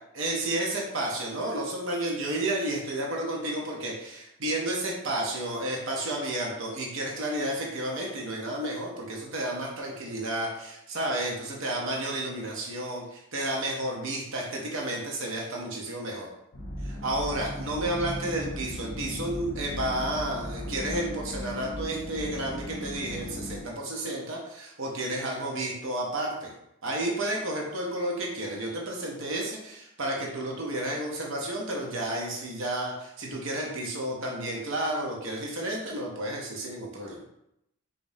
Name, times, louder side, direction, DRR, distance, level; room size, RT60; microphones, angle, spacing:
voice 1, 0.1-16.3 16.8-26.5 26.8-37.2, right 1 dB, 60° right, -2 dB, 0.7 m, -31 dB
sound 1, 16.5-23.6, left 1 dB, 65° left, 0.7 m, -37 dB
4.9 x 2.6 x 2.6 m, 0.82 s
head